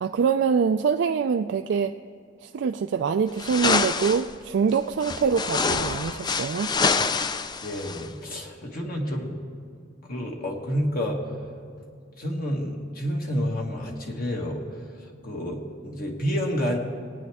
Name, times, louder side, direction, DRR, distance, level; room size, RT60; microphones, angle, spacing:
voice 1, 0.0-2.0 2.4-6.7, right 6 dB, 65° right, 6 dB, 0.3 m, -24 dB
sound 1, 3.4-4.3 5.0-8.1, left 4 dB, 20° left, 0.4 m, -26 dB
voice 2, 7.6-9.4 10.1-11.3 12.2-14.6 15.2-16.8, equal, 50° left, 0 dB, 1.7 m, -29 dB
20.5 x 9.3 x 3.5 m, 2.3 s
head